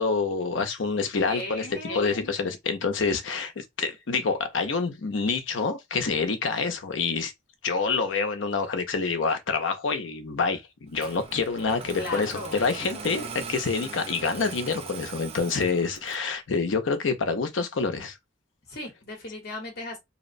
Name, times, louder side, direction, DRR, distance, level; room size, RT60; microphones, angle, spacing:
voice 1, 0.0-7.3 7.6-18.2, left 4 dB, 85° left, 0.6 m, -27 dB
voice 2, 1.3-2.2 11.9-12.6 18.7-20.0, left 2 dB, 55° left, 0.9 m, -36 dB
Engine starting, 10.9-16.3, right 5 dB, 30° right, 0.3 m, -40 dB
2.8 x 2.1 x 2.5 m
head